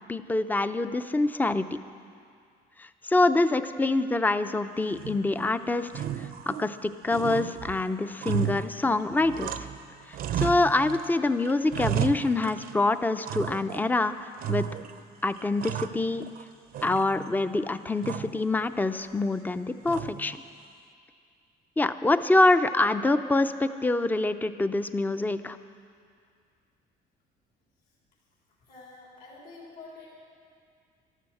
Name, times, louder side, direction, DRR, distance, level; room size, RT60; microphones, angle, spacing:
voice 1, 0.1-1.8 2.8-9.5 10.4-14.6 15.2-16.3 16.8-20.4 21.8-25.6, left 2 dB, 10° left, 11 dB, 0.5 m, -25 dB
sound 1, 4.9-5.5 5.9-6.8 7.1-9.8 10.1-11.1 11.4-12.8 13.3-13.9 14.4-15.0 15.4-16.4 16.7-17.5 18.0-18.4 19.9-20.4, right 11 dB, 60° right, 0.6 m, -34 dB
voice 2, 28.7-30.1, left 3 dB, 65° left, -4 dB, 3.8 m, -47 dB
12.5 x 12.0 x 7.8 m, 2.3 s
cardioid pair, 110°, 17 cm